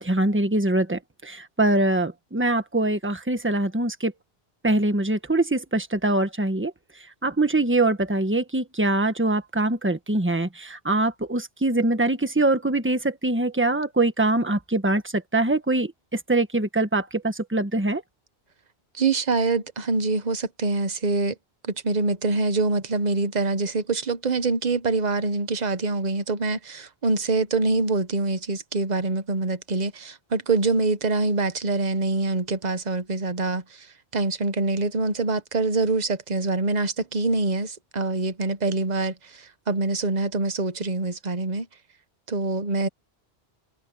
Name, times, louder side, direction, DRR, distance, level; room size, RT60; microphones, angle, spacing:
voice 1, 0.0-4.1 4.6-6.7 7.2-18.0, right 2 dB, 10° right, 1.4 m, -23 dB
voice 2, 19.0-21.3 21.6-33.9 34.1-41.7 42.3-42.9, right 3 dB, 45° right, 1.2 m, -25 dB
omnidirectional pair, 1.1 m